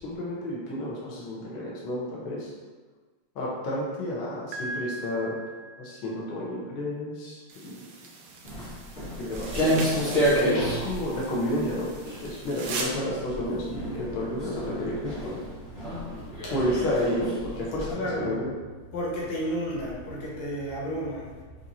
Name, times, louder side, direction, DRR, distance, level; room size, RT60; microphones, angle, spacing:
voice 1, 0.0-2.5 3.3-5.4 5.8-7.9 9.2-11.9 12.2-15.4 16.5-18.5, left 1 dB, 80° left, -5 dB, 1.1 m, -31 dB
Piano, 4.5-6.4, right 1 dB, 90° right, 2.4 m, -39 dB
sound 1, 7.5-12.8, right 4 dB, 75° right, 2.5 m, -40 dB
Walk footsteps, 8.4-17.9, equal, 35° left, 1.1 m, -30 dB
voice 2, 17.9-18.4 18.9-21.2, equal, 60° left, -5 dB, 2.3 m, -31 dB
7.7 x 3.0 x 4.1 m, 1.4 s
omnidirectional pair, 4.1 m